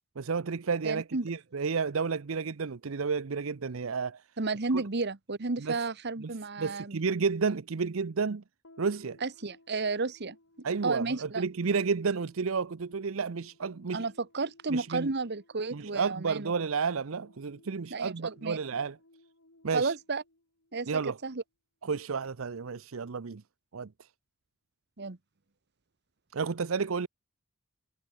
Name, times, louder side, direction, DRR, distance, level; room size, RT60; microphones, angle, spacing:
voice 1, 0.2-4.2 5.6-5.8 6.2-6.3 6.6-8.4 8.8-9.2 10.6-14.0 14.7-15.1 15.7-19.0 19.6-19.9 20.9-21.2 21.8-23.4 23.7-23.9 26.3-27.1, right 5 dB, 80° right, 0.7 m, -31 dB
voice 2, 0.8-1.3 4.4-7.0 9.2-10.4 10.8-11.4 13.9-16.5 17.9-18.6 19.7-20.2 20.7-21.4 25.0-25.2, right 3 dB, 55° right, 1.2 m, -32 dB
sound 1, 8.6-21.2, left 2 dB, 90° left, 3.6 m, -61 dB
head